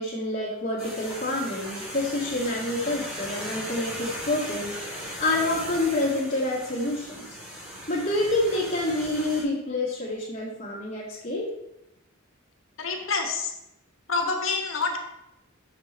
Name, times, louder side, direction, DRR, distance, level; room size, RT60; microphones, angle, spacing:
voice 1, 0.0-7.3 7.9-11.5, left 2 dB, 35° left, -9 dB, 2.2 m, -28 dB
sound 1, 0.8-9.4, equal, 5° right, 3.1 m, -38 dB
voice 2, 12.8-13.5 14.1-15.0, left 4 dB, 70° left, 4 dB, 1.3 m, -27 dB
7.3 x 6.6 x 4.4 m, 0.88 s
head